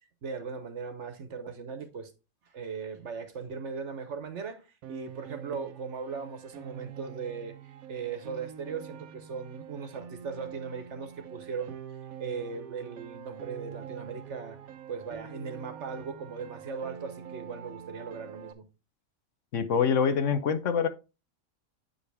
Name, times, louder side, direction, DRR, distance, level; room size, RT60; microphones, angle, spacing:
voice 1, 0.2-2.1 2.5-7.6 7.9-11.8 12.2-14.6 14.9-18.7, right 5 dB, 60° right, 1.3 m, -38 dB
Piano, 4.8-18.5, right 9 dB, 85° right, 1.2 m, -45 dB
voice 2, 19.5-20.9, left 6 dB, 65° left, 1.1 m, -25 dB
8.5 x 5.1 x 3.3 m
omnidirectional pair, 1.4 m